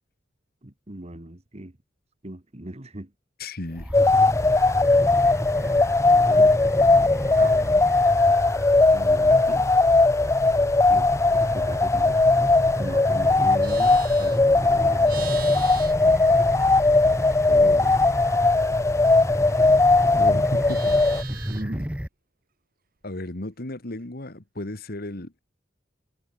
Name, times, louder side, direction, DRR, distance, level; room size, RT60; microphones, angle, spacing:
voice 1, 0.6-1.8 2.2-3.1 5.6-7.9 8.9-9.7 10.9-12.2 12.8-15.3 21.3-22.0, right 1 dB, 35° right, 1.7 m, -39 dB
voice 2, 3.4-3.9 17.5-18.0 20.1-21.0 23.0-25.4, left 1 dB, 55° left, 2.0 m, -34 dB
sound 1, 3.7-22.1, equal, 5° right, 1.6 m, -31 dB
sound 2, 3.9-21.2, left 3 dB, 15° left, 0.4 m, -19 dB
Livestock farm animals working animals, 13.6-17.1 17.4-19.9 20.2-21.8, right 9 dB, 50° right, 2.1 m, -43 dB
head